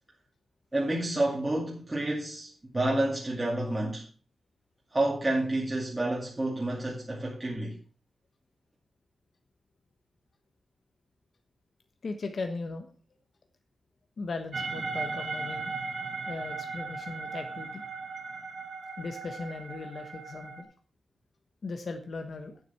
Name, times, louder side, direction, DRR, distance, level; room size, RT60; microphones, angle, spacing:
voice 1, 0.7-4.0 4.9-7.7, right 1 dB, 20° right, 2.4 m, -29 dB
voice 2, 12.0-12.9 14.2-15.8 16.3-17.8 19.0-20.7 21.6-22.6, left 3 dB, 60° left, 1.2 m, -38 dB
sound 1, 14.5-20.6, right 4 dB, 50° right, 1.7 m, -37 dB
9.4 x 7.8 x 5.8 m
wide cardioid pair, 105°, 0 cm